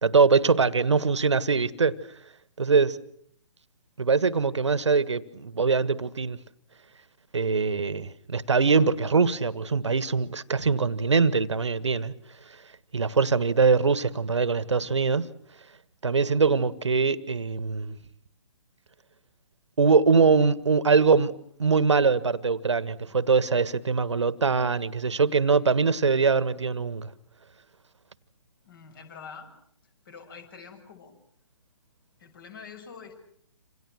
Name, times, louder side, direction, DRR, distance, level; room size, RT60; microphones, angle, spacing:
voice 1, 0.0-2.0 2.6-3.0 4.0-6.4 7.3-12.1 12.9-15.3 16.0-18.0 19.8-21.3 21.6-27.1, right 4 dB, 70° right, 1.6 m, -23 dB
voice 2, 28.6-29.5 30.1-31.1 32.2-33.3, left 6 dB, 45° left, 7.1 m, -45 dB
28.0 x 27.5 x 6.3 m
figure-of-eight pair, 135°, 16 cm